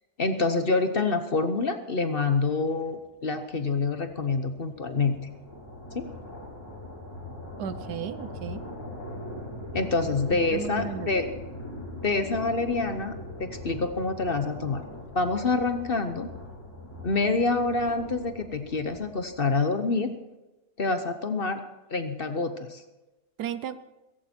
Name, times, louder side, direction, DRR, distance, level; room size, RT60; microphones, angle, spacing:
voice 1, 0.2-5.2 5.9-6.1 9.7-11.3 12.0-14.8 15.1-16.3 17.0-20.1 20.8-21.6 21.9-22.8, left 3 dB, 40° left, 9 dB, 1.0 m, -27 dB
sound 1, 3.5-19.5, left 1 dB, 15° left, 3.4 m, -41 dB
voice 2, 7.6-8.6 10.3-11.1 23.4-23.8, right 8 dB, 80° right, 13 dB, 1.4 m, -35 dB
16.5 x 15.5 x 4.4 m, 1.0 s
omnidirectional pair, 1.7 m